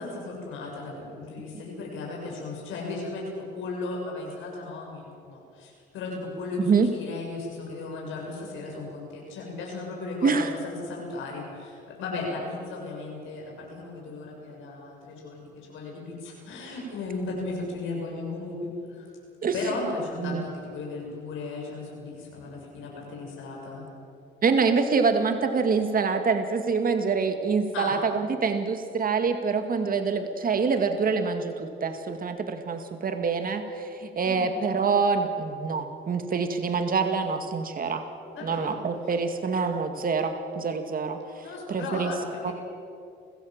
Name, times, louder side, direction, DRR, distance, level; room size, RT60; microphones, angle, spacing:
voice 1, 0.0-19.1 19.5-23.9 27.7-27.9 34.2-34.5 38.3-38.8 41.4-42.5, left 3 dB, 90° left, -2 dB, 7.0 m, -36 dB
voice 2, 6.6-6.9 10.2-10.5 19.4-19.5 20.2-20.4 24.4-38.0 38.4-42.1 42.4-42.5, right 5 dB, 45° right, 6 dB, 2.2 m, -26 dB
29.0 x 16.5 x 7.6 m, 2.5 s
cardioid pair, 90°, 20 cm